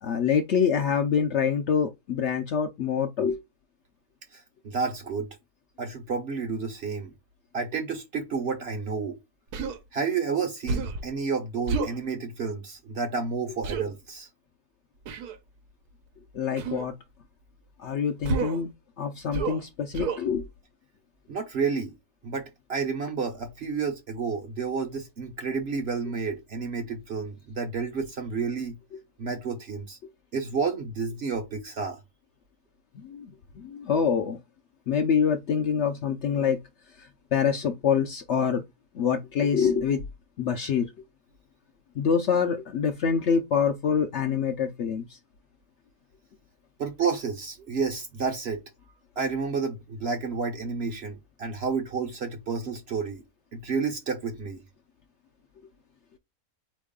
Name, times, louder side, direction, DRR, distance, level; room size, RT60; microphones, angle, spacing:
voice 1, 0.0-3.4 16.3-16.9 17.8-18.7 19.0-20.5 33.0-33.3 33.6-34.4 34.9-36.6 37.0-38.6 38.9-40.0 40.4-40.9 42.0-45.2, left 7 dB, 65° left, 0.7 m, -25 dB
voice 2, 4.3-5.4 5.8-7.1 7.5-9.2 9.9-14.3 21.3-21.9 22.2-28.8 29.2-30.0 30.3-32.0 46.8-48.6 49.2-53.2 53.5-54.6, right 5 dB, 50° right, 0.8 m, -30 dB
Human voice, 9.5-9.8 10.7-11.1 11.7-12.0 13.6-13.9 15.1-15.4 16.6-16.9 18.2-18.6 19.3-19.6 19.9-20.2, right 4 dB, 80° right, 1.3 m, -29 dB
4.4 x 3.1 x 3.6 m
omnidirectional pair, 1.6 m